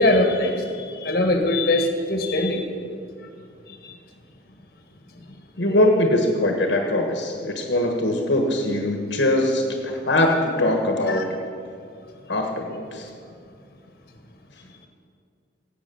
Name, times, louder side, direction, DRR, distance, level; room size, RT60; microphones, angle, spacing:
voice 1, 0.0-2.6 3.2-3.3 3.7-3.9 5.1-5.9 11.1-11.3 14.6-14.7, left 1 dB, 50° left, 4 dB, 1.7 m, -23 dB
voice 2, 5.6-11.4 12.3-13.1, left 1 dB, 70° left, 2 dB, 1.4 m, -22 dB
17.5 x 8.6 x 7.0 m, 2.3 s
head